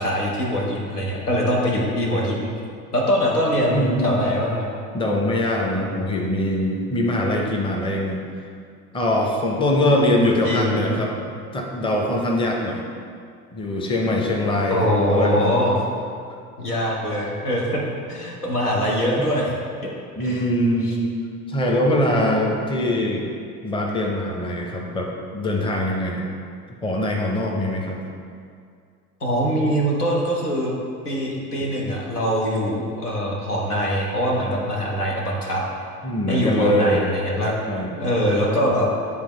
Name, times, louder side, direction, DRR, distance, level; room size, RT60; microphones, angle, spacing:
voice 1, 0.0-2.5 2.9-4.7 10.4-11.0 14.7-15.8 16.6-17.8 18.1-19.5 20.2-20.5 20.8-20.9 22.1-22.3 29.2-30.7 31.0-35.6 36.3-37.5 38.0-38.9, equal, 85° left, -3 dB, 1.1 m, -23 dB
voice 2, 3.6-4.2 4.9-8.2 8.9-11.1 11.5-12.8 13.5-15.7 19.2-19.3 20.2-21.1 21.5-23.3 23.6-26.3 26.8-28.0 36.0-37.1 37.7-37.9, left 1 dB, 10° left, 0 dB, 0.7 m, -22 dB
9.5 x 3.6 x 3.2 m, 2.3 s
figure-of-eight pair, 65°, 45 cm